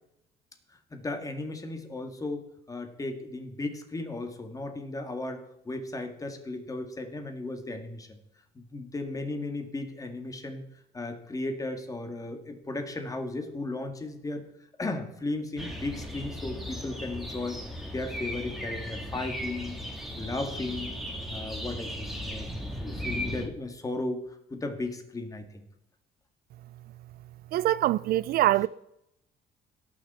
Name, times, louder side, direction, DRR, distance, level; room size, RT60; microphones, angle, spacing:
voice 1, 0.7-8.2 8.5-10.6 10.9-14.4 14.8-17.6 17.9-19.8 20.2-21.0 21.3-22.5 22.8-24.2 24.5-25.6, left 2 dB, 20° left, 1.9 m, -35 dB
sound 1, 15.6-23.5, equal, ahead, 2.0 m, -36 dB
voice 2, 27.5-28.7, right 15 dB, 65° right, 0.4 m, -24 dB
18.0 x 6.4 x 4.3 m
cardioid pair, 110°, 17 cm